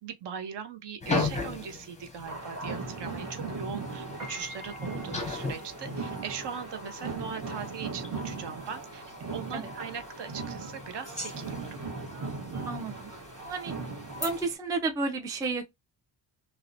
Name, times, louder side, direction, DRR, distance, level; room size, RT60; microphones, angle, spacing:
voice 1, 0.0-9.0 9.3-11.8, right 7 dB, 60° right, 0.6 m, -40 dB
sound 1, 1.0-14.5, left 3 dB, 15° left, 0.7 m, -39 dB
sound 2, 2.2-14.4, right 3 dB, 30° right, 1.0 m, -38 dB
Piano, 4.0-14.4, left 1 dB, 85° right, 1.1 m, -50 dB
voice 2, 12.7-13.1 13.5-13.7 14.2-15.6, right 3 dB, 10° right, 0.3 m, -31 dB
2.8 x 2.0 x 2.5 m
cardioid pair, 100°, 49 cm